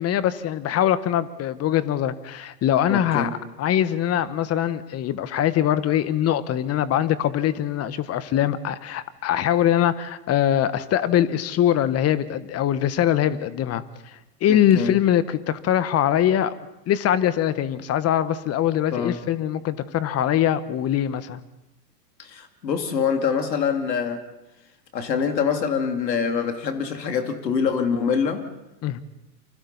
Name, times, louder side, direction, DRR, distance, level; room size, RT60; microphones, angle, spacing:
voice 1, 0.0-3.3 3.6-13.8 14.4-16.5 16.9-21.4 28.8-29.0, left 11 dB, 30° left, 14 dB, 1.3 m, -22 dB
voice 2, 2.9-3.3 14.5-14.9 18.9-19.2 22.2-24.2 24.9-28.4, left 6 dB, 80° left, 5 dB, 2.8 m, -25 dB
29.5 x 25.5 x 4.2 m, 0.96 s
hypercardioid pair, 100°, 49 cm